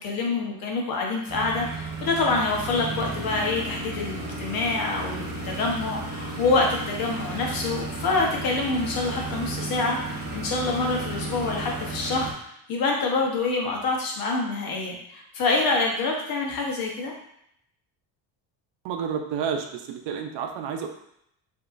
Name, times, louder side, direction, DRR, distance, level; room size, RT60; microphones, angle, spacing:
voice 1, 0.0-12.3 12.7-17.1, left 3 dB, 55° left, -1 dB, 1.0 m, -26 dB
sound 1, 1.3-12.3, right 2 dB, 20° right, 1.1 m, -34 dB
voice 2, 18.8-20.9, right 7 dB, 70° right, 5 dB, 0.7 m, -30 dB
5.1 x 2.8 x 2.5 m, 0.75 s
cardioid pair, 150°, 43 cm